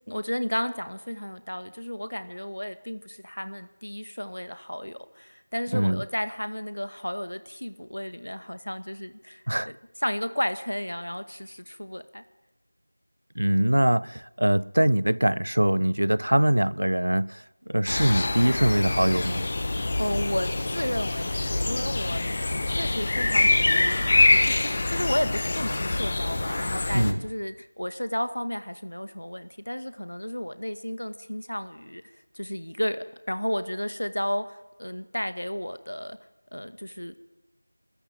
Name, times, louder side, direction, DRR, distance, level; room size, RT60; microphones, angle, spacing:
voice 1, 0.1-9.7 10.0-12.2 19.7-36.2 36.5-37.2, equal, 85° left, 2.0 m, -33 dB
voice 2, 13.4-19.5 26.9-27.2, right 1 dB, 75° right, 0.7 m, -23 dB
sound 1, 17.9-27.1, left 2 dB, 25° left, 1.2 m, -25 dB
29.0 x 13.5 x 9.1 m
figure-of-eight pair, 175°, 0 cm